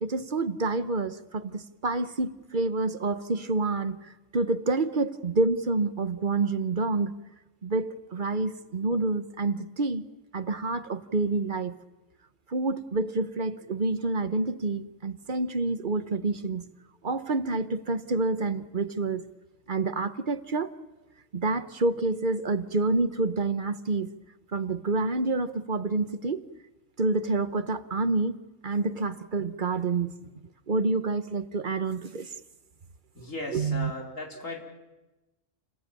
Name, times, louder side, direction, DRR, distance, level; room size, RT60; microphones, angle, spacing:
voice 1, 0.0-7.2 7.6-10.1 10.3-11.7 12.5-16.6 17.0-19.2 19.7-20.7 21.3-24.1 24.5-26.4 27.0-28.4 28.6-30.2 30.7-32.4 33.5-33.9, right 3 dB, 40° right, 1.2 m, -28 dB
voice 2, 33.1-34.6, left 2 dB, 85° left, 5.0 m, -37 dB
29.0 x 20.5 x 9.1 m
omnidirectional pair, 1.3 m